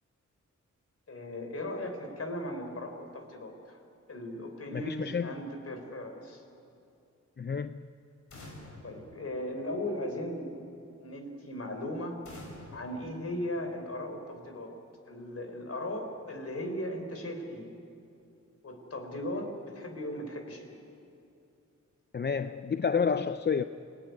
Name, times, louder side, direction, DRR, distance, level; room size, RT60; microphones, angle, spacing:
voice 1, 1.1-3.8 4.1-6.4 8.8-10.5 11.0-12.2 12.7-14.8 15.1-17.6 18.6-20.8, left 1 dB, 55° left, 4.4 m, -37 dB
voice 2, 4.7-5.3 7.4-7.9 22.1-23.6, left 6 dB, 35° left, 0.6 m, -29 dB
sound 1, 8.3-10.1 12.2-14.0, left 2 dB, 75° left, 7.0 m, -50 dB
28.5 x 18.5 x 9.7 m
wide cardioid pair, 95°, 30 cm